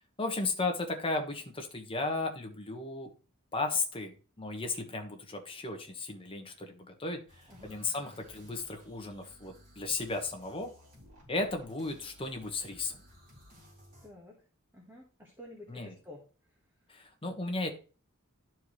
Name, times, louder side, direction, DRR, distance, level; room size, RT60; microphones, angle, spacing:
voice 1, 0.2-3.1 3.5-7.2 7.6-10.7 11.3-13.0 15.7-15.9 16.9-17.7, left 3 dB, 25° left, 4 dB, 1.4 m, -35 dB
sound 1, 7.3-14.1, equal, 40° right, 4.2 m, -57 dB
voice 2, 14.0-14.4 14.7-16.2, left 1 dB, 10° right, -1 dB, 1.5 m, -50 dB
12.0 x 4.6 x 3.2 m, 0.36 s
head